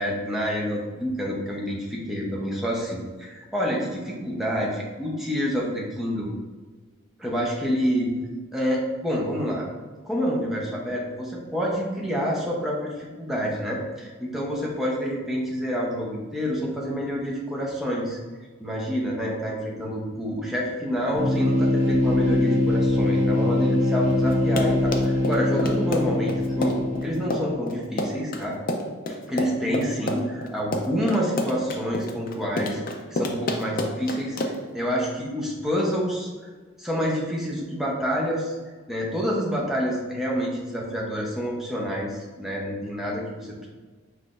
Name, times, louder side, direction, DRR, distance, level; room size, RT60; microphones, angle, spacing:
voice 1, 0.0-6.3 7.2-8.1 8.5-9.7 10.0-18.2 18.6-26.8 27.0-28.6 29.3-32.8 33.1-34.4 34.7-36.5 36.8-38.6 38.9-43.7, equal, ahead, -4 dB, 0.7 m, -28 dB
sound 1, 21.1-27.8, left 1 dB, 40° right, 1.0 m, -23 dB
Run, 24.3-34.7, left 1 dB, 45° left, 0.4 m, -29 dB
5.7 x 3.2 x 2.5 m, 1.4 s
head